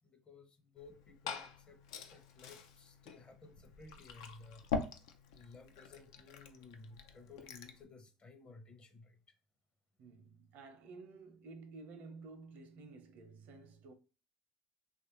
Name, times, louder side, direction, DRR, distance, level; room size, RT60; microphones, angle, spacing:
voice 1, 0.0-1.8 2.1-4.7 5.3-9.4, left 3 dB, 35° left, 0.7 m, -56 dB
Liquid, 0.8-7.8, left 5 dB, 85° left, 0.4 m, -44 dB
voice 2, 10.0-13.9, right 3 dB, 65° right, 0.7 m, -53 dB
3.1 x 2.4 x 2.9 m
supercardioid pair, 80°, 3 cm